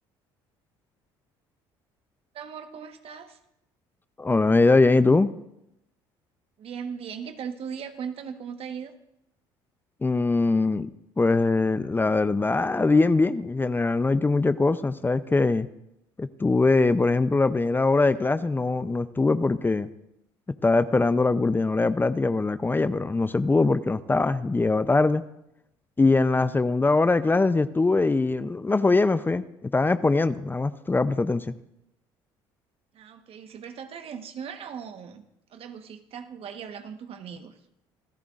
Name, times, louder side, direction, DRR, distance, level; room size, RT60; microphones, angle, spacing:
voice 1, 2.3-3.4 6.6-8.9 32.9-37.6, right 7 dB, 55° right, 7 dB, 1.3 m, -38 dB
voice 2, 4.2-5.3 10.0-10.9 11.2-15.7 16.2-19.9 20.6-25.2 26.0-31.5, left 3 dB, 15° left, 13 dB, 0.6 m, -22 dB
27.5 x 14.0 x 2.5 m, 0.83 s
hypercardioid pair, 70°, 12 cm